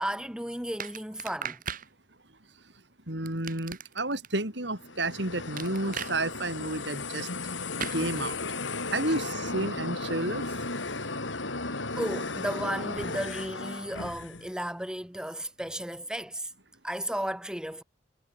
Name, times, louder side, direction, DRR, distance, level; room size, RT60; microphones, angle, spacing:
voice 1, 0.0-1.6 12.0-16.5 16.8-17.8, right 1 dB, 5° right, 2.0 m, -34 dB
sound 1, 0.8-1.9 3.3-4.3 5.6-6.1 7.8-8.0, right 7 dB, 45° right, 3.0 m, -37 dB
voice 2, 3.1-7.3 7.9-8.4 8.9-10.5, right 2 dB, 65° right, 5.5 m, -31 dB
sound 2, 4.8-14.5, left 3 dB, 80° left, 5.0 m, -35 dB
head